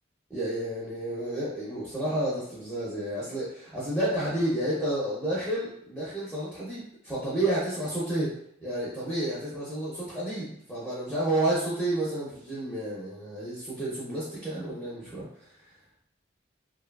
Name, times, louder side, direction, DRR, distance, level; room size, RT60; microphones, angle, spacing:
voice 1, 0.3-8.3 8.6-15.3, right 1 dB, ahead, -9 dB, 0.6 m, -30 dB
2.8 x 2.3 x 2.2 m, 0.69 s
head